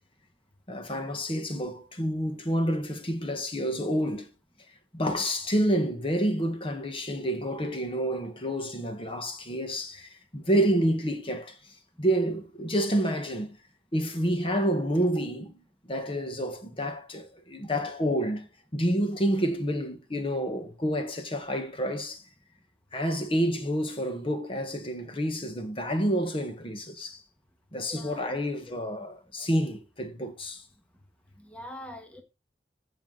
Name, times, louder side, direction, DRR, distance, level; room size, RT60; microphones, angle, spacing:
voice 1, 0.7-4.3 4.9-11.6 12.0-13.6 13.9-15.6 15.9-18.5 18.7-22.2 22.9-27.2 27.7-30.6, equal, 30° left, 1.5 m, -29 dB
voice 2, 27.9-28.4 31.4-32.2, left 1 dB, 5° left, 1.4 m, -43 dB
15.5 x 5.8 x 4.0 m
head